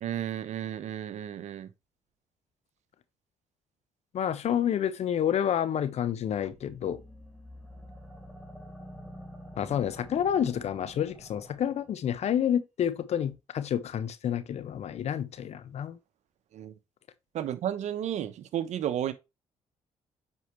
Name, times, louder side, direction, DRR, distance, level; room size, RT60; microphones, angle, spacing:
voice 1, 0.0-1.7 16.5-16.7 17.3-19.1, right 10 dB, 70° right, 1.0 m, -32 dB
voice 2, 4.1-7.0 9.6-16.0, left 9 dB, 60° left, 1.0 m, -29 dB
sound 1, 6.5-11.9, equal, ahead, 3.5 m, -48 dB
8.3 x 4.9 x 3.1 m
supercardioid pair, 75°, 12 cm